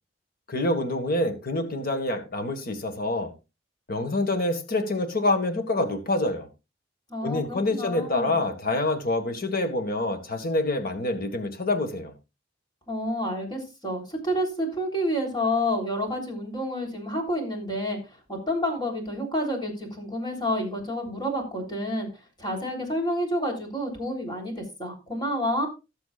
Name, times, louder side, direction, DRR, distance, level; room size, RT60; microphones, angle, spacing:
voice 1, 0.5-3.3 3.9-6.5 7.2-12.1, left 2 dB, 50° left, 1.7 m, -26 dB
voice 2, 7.1-8.4 12.9-22.1 22.4-25.7, equal, 25° left, 3.6 m, -29 dB
19.5 x 6.9 x 2.4 m
head